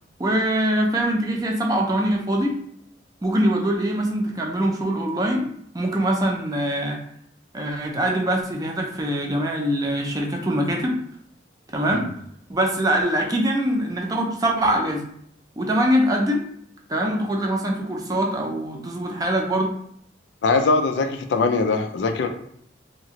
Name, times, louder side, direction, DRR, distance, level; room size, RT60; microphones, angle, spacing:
voice 1, 0.2-2.6 3.2-7.0 7.5-11.0 11.7-12.1 12.5-15.1 15.6-16.4 16.9-19.7, right 1 dB, 20° right, 0 dB, 0.4 m, -23 dB
voice 2, 20.4-22.3, left 3 dB, 70° left, 6 dB, 0.4 m, -21 dB
2.9 x 2.4 x 2.8 m, 0.67 s
head